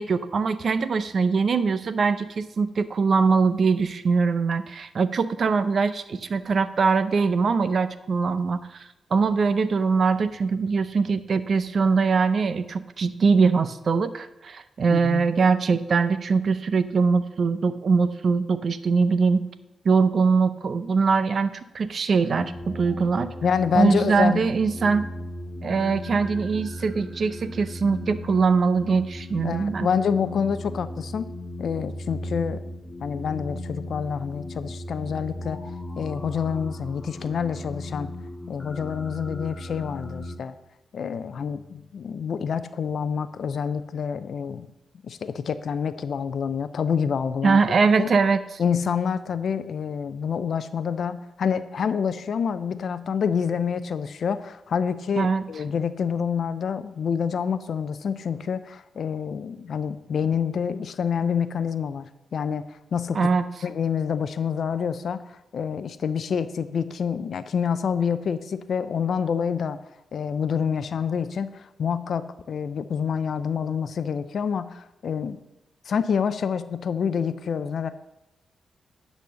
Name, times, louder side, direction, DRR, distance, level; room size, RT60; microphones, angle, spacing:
voice 1, 0.0-19.4 19.8-23.3 23.7-25.0 25.6-29.9 47.4-48.4 55.2-55.4 63.1-63.5, right 5 dB, 60° right, 13 dB, 0.6 m, -22 dB
voice 2, 14.9-15.2 23.4-24.4 29.4-31.3 31.6-32.7 33.0-35.6 36.0-38.1 38.5-40.5 40.9-44.7 45.0-47.6 48.0-48.1 48.6-62.1 62.3-62.6 62.9-63.3 63.6-65.2 65.5-69.8 70.1-75.4 75.9-77.9, left 7 dB, 70° left, 12 dB, 0.5 m, -27 dB
sound 1, 22.3-40.4, left 1 dB, 20° left, 1.7 m, -37 dB
10.5 x 4.1 x 6.3 m, 0.92 s
supercardioid pair, 50°, 0 cm